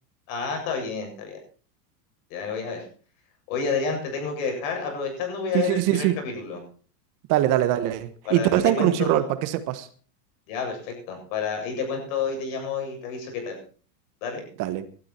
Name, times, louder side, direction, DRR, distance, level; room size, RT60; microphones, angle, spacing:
voice 1, 0.3-1.4 2.3-2.8 3.5-6.6 8.2-9.3 10.5-13.6 14.2-14.5, left 5 dB, 55° left, 3 dB, 7.8 m, -30 dB
voice 2, 5.5-6.2 7.3-9.9 14.6-14.8, right 13 dB, 40° right, 12 dB, 1.3 m, -22 dB
19.0 x 12.5 x 4.4 m, 0.40 s
supercardioid pair, 145°, 48 cm